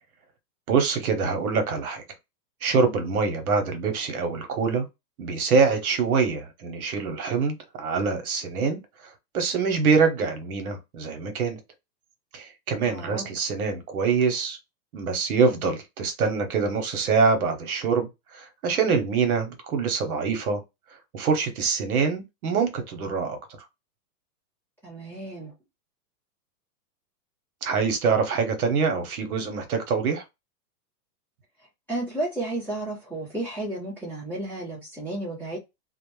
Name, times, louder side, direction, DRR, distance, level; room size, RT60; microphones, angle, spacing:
voice 1, 0.7-2.0 2.6-4.9 5.2-11.6 12.3-14.6 14.9-20.6 21.1-23.4 27.6-30.2, right 5 dB, 65° right, 0.9 m, -25 dB
voice 2, 12.8-13.2 24.8-25.5 31.9-35.6, right 2 dB, 5° left, 0.7 m, -32 dB
2.5 x 2.0 x 3.0 m
hypercardioid pair, 165°, 48 cm